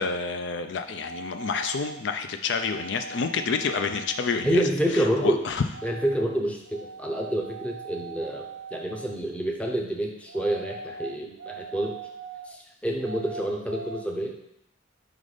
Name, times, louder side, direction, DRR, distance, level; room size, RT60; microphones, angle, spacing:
voice 1, 0.0-4.6 5.2-5.6, left 5 dB, 65° left, 7 dB, 0.4 m, -28 dB
sound 1, 0.9-2.0 2.5-4.6 5.7-6.3 6.6-9.2 10.3-12.6 13.0-14.0, right 4 dB, 60° right, 0.4 m, -41 dB
voice 2, 4.4-5.4 5.8-12.0 12.5-14.3, right 1 dB, 5° left, 1 dB, 0.6 m, -28 dB
5.1 x 4.0 x 4.9 m, 0.78 s
head